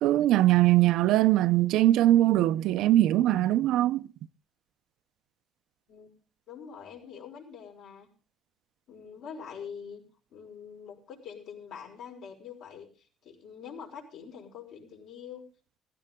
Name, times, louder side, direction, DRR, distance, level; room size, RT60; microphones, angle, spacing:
voice 1, 0.0-4.0, right 14 dB, 85° right, 0.6 m, -21 dB
voice 2, 6.5-8.1 8.9-10.0 10.3-12.9 13.2-15.4, left 7 dB, 70° left, 5.6 m, -44 dB
16.0 x 16.0 x 3.7 m
cardioid pair, 150°, 0 cm